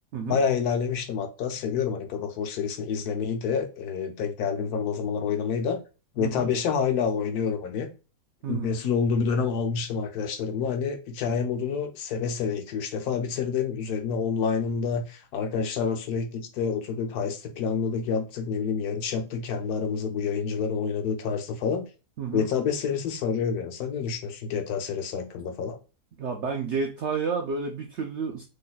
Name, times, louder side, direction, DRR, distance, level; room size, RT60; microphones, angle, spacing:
voice 1, 0.3-5.8 6.1-7.9 8.5-21.8 22.3-25.8, left 6 dB, 70° left, 5 dB, 1.1 m, -28 dB
voice 2, 6.2-6.5 8.4-8.8 22.2-22.5 26.2-28.4, right 5 dB, 75° right, 4 dB, 0.6 m, -30 dB
3.2 x 2.2 x 3.9 m, 0.32 s
omnidirectional pair, 1.7 m